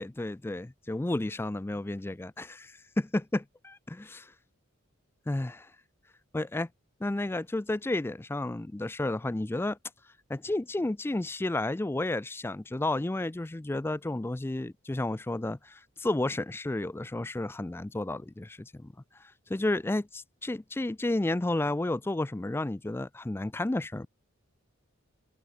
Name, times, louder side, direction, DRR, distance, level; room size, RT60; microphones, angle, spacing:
voice 1, 0.0-4.3 5.3-5.7 6.3-6.7 7.0-9.8 10.3-18.9 19.5-24.1, left 2 dB, 10° left, 0.3 m, -32 dB
open air
head